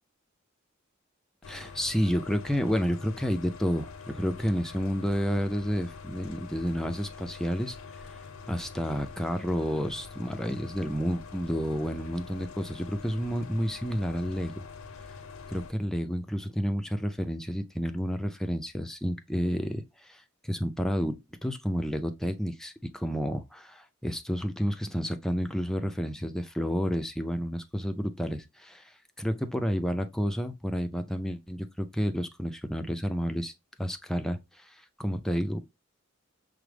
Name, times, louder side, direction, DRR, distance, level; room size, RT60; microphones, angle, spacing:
sound 1, 1.4-15.7, left 5 dB, 85° left, 0.5 m, -45 dB
voice 1, 1.5-7.8 8.5-14.6 15.5-33.5 33.8-35.6, equal, ahead, 0.4 m, -30 dB
5.9 x 2.0 x 3.2 m
head